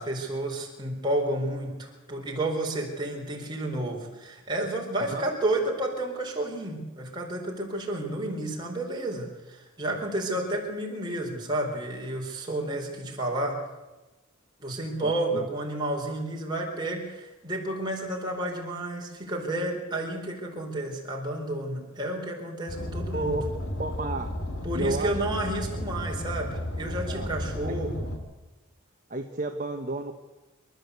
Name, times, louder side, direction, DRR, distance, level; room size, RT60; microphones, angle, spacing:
voice 1, 0.0-13.6 14.6-23.4 24.6-28.1, right 1 dB, 20° right, -1 dB, 4.3 m, -31 dB
voice 2, 15.0-15.5 23.1-23.4 23.8-24.3 24.7-25.1 26.8-27.3 27.6-27.7 29.1-30.2, right 2 dB, 35° right, 4 dB, 1.3 m, -32 dB
Car, 22.7-28.2, left 1 dB, 80° left, 3.3 m, -33 dB
27.5 x 12.5 x 8.2 m, 1.1 s
head